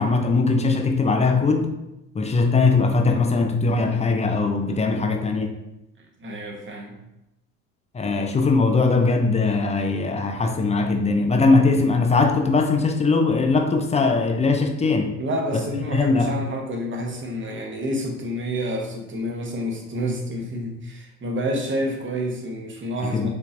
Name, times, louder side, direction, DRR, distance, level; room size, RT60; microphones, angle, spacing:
voice 1, 0.0-1.7 2.1-5.5 7.9-15.1 15.5-15.6 15.9-16.3 23.1-23.3, left 3 dB, 15° left, 0.5 m, -20 dB
voice 2, 6.0-7.0 15.2-23.3, equal, 25° right, 1.1 m, -29 dB
5.2 x 3.2 x 2.6 m
hypercardioid pair, 65°, 43 cm